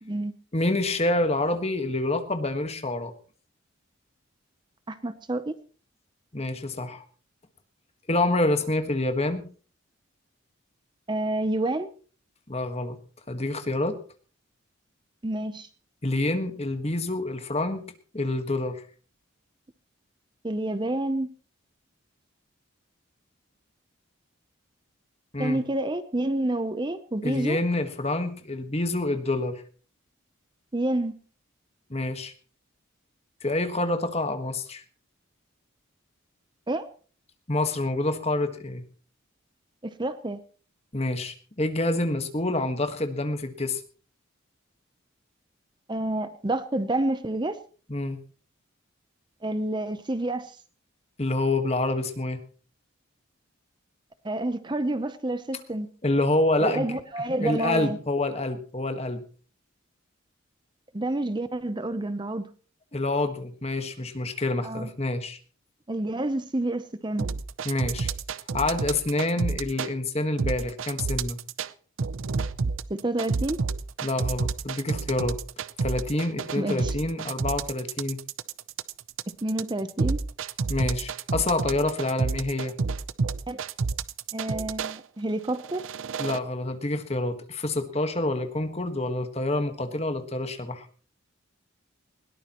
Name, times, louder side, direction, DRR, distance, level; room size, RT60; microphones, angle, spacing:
voice 1, 0.0-0.3 4.9-5.5 11.1-11.9 15.2-15.7 20.4-21.3 25.4-27.6 30.7-31.1 36.7-36.9 39.8-40.4 45.9-47.6 49.4-50.6 54.2-55.9 56.6-58.0 60.9-62.5 64.6-64.9 65.9-67.3 72.9-73.6 76.6-76.9 79.4-80.2 83.5-83.6 84.3-85.8, right 1 dB, 20° right, 11 dB, 0.7 m, -28 dB
voice 2, 0.5-3.1 6.3-7.0 8.1-9.4 12.5-13.0 13.3-14.0 16.0-17.9 18.1-18.8 25.3-25.6 27.2-29.6 31.9-32.3 33.4-34.8 37.5-38.8 40.9-43.8 47.9-48.2 51.2-52.4 56.0-57.0 57.4-59.2 62.9-65.4 67.6-68.1 68.5-71.4 74.0-75.4 75.8-78.2 80.7-82.7 86.2-90.9, left 2 dB, 30° left, 8 dB, 1.5 m, -27 dB
sound 1, 67.2-69.9 70.4-71.7 72.0-85.0 85.5-86.4, right 4 dB, 75° right, 0.6 m, -29 dB
20.5 x 18.0 x 3.0 m, 0.40 s
head